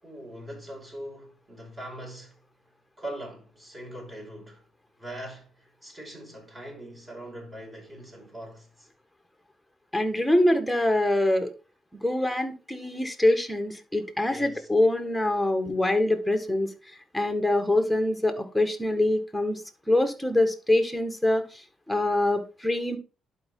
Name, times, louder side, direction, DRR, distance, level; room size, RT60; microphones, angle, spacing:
voice 1, 0.0-2.4 3.0-4.6 5.0-8.9 14.3-14.7, right 1 dB, 25° right, 5.4 m, -41 dB
voice 2, 9.9-11.5 12.0-16.7 17.1-19.6 19.9-21.6 21.9-23.0, left 1 dB, ahead, 1.6 m, -24 dB
11.5 x 4.7 x 3.7 m
cardioid pair, 90°, 0 cm